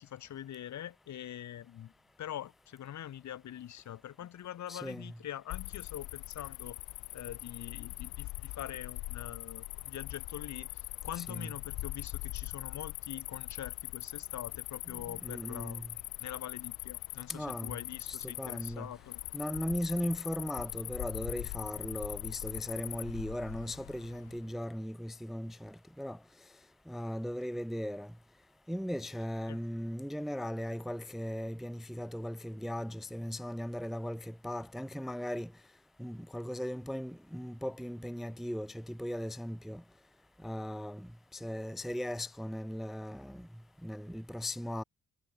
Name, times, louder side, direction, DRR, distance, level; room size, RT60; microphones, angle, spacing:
voice 1, 0.0-1.9 2.2-6.8 7.1-19.2 29.5-29.6, left 11 dB, 65° left, 3.1 m, -44 dB
voice 2, 4.7-5.1 11.2-11.5 14.9-15.9 17.3-17.8 18.1-18.9 19.3-26.2 26.9-28.1 28.7-35.5 36.0-39.8 40.4-43.5 43.8-44.8, equal, ahead, 0.5 m, -38 dB
Cricket, 5.5-24.4, left 18 dB, 90° left, 0.7 m, -42 dB
cardioid pair, 90°, 30 cm